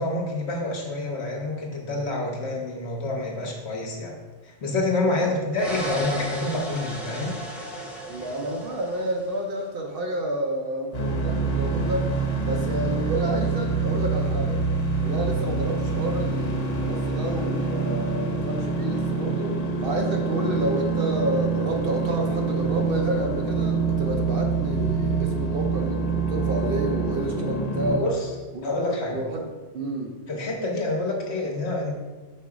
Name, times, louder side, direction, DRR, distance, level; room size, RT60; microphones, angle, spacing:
voice 1, 0.0-4.1 4.4-7.4 28.0-28.3 28.6-29.2 30.3-31.9, left 2 dB, 60° left, 0 dB, 1.3 m, -27 dB
sound 1, 5.5-9.4, right 1 dB, ahead, 0.7 m, -35 dB
voice 2, 8.1-14.7 15.0-28.1 28.5-30.2, right 1 dB, 55° right, 2 dB, 0.8 m, -30 dB
sound 2, 10.9-28.0, right 4 dB, 85° left, 1.3 m, -26 dB
5.4 x 4.1 x 4.8 m, 1.3 s
omnidirectional pair, 1.3 m